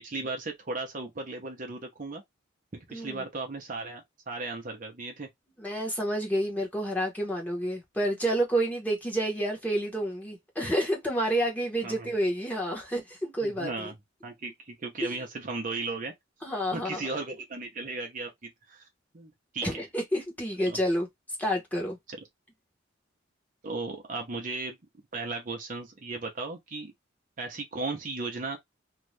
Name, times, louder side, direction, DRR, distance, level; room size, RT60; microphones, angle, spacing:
voice 1, 0.0-2.2 2.7-5.3 11.8-12.1 13.4-13.9 14.2-16.1 16.7-18.9 19.1-19.8 20.6-20.8 22.1-22.2 23.6-24.8 25.1-26.9 27.4-28.6, right 3 dB, 40° right, 0.7 m, -36 dB
voice 2, 2.9-3.2 5.6-13.9 15.0-15.1 16.4-17.1 19.6-21.1 21.4-22.0, right 1 dB, 10° left, 1.1 m, -29 dB
2.7 x 2.4 x 3.2 m
head